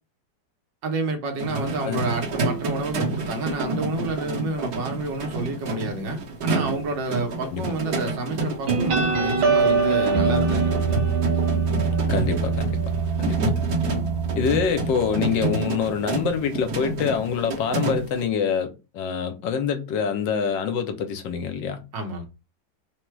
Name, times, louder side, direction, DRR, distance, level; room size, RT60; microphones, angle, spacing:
voice 1, 0.8-10.7 21.9-22.3, right 3 dB, 75° right, 1.6 m, -29 dB
sound 1, 1.4-18.2, right 2 dB, 55° right, 1.6 m, -29 dB
sound 2, 8.7-15.8, right 4 dB, 90° right, 1.8 m, -24 dB
voice 2, 12.1-12.7 13.2-13.5 14.4-21.8, left 6 dB, 80° left, 1.3 m, -25 dB
3.8 x 2.1 x 4.5 m
omnidirectional pair, 2.0 m